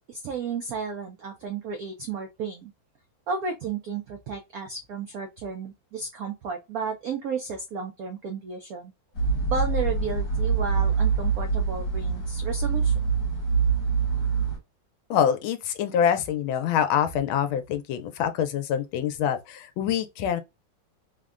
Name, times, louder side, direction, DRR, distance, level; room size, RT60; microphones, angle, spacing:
voice 1, 0.0-2.7 3.3-8.9 9.5-12.9, right 5 dB, 90° right, 0.7 m, -33 dB
sound 1, 9.2-14.6, right 5 dB, 55° left, 1.4 m, -25 dB
voice 2, 15.1-20.4, left 8 dB, 85° left, 1.4 m, -25 dB
3.5 x 2.1 x 2.3 m
omnidirectional pair, 2.1 m